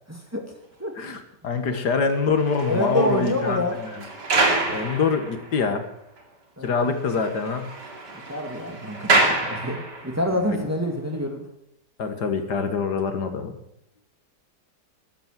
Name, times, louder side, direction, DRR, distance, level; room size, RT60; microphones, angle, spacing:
voice 1, 0.1-0.4 0.8-0.9 2.7-3.8 6.6-6.9 8.3-11.4, left 1 dB, 10° right, 2 dB, 2.3 m, -27 dB
voice 2, 1.0-4.0 4.7-5.8 6.6-7.8 10.5-10.7 12.0-13.6, left 5 dB, 75° left, 8 dB, 2.1 m, -25 dB
sound 1, 2.1-5.9 6.2-6.3 6.6-6.7 7.0-10.3 11.0-11.1, right 2 dB, 85° right, 3.1 m, -27 dB
13.5 x 12.0 x 7.4 m, 0.78 s
omnidirectional pair, 1.8 m